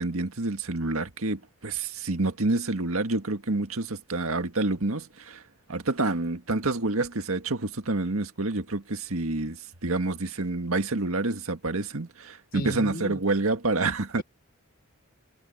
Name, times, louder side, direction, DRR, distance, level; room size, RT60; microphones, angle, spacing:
voice 1, 0.0-5.4 5.7-14.2, right 2 dB, 80° right, 1.8 m, -28 dB
voice 2, 12.5-13.2, left 1 dB, 45° left, 4.1 m, -34 dB
head